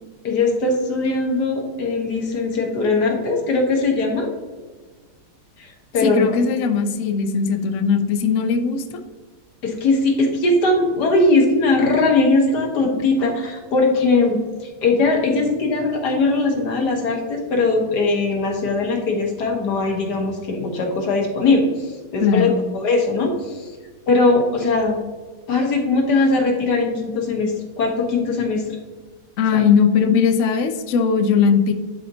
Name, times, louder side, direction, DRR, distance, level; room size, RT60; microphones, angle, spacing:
voice 1, 0.2-4.3 5.6-6.4 9.6-14.4 14.8-23.7 24.1-25.0 25.5-28.8 29.5-29.6, left 3 dB, 60° left, 2 dB, 1.7 m, -20 dB
voice 2, 6.0-9.0 22.2-22.6 29.4-31.7, left 6 dB, 80° left, 6 dB, 0.7 m, -19 dB
10.5 x 4.2 x 2.8 m, 1.4 s
omnidirectional pair, 2.1 m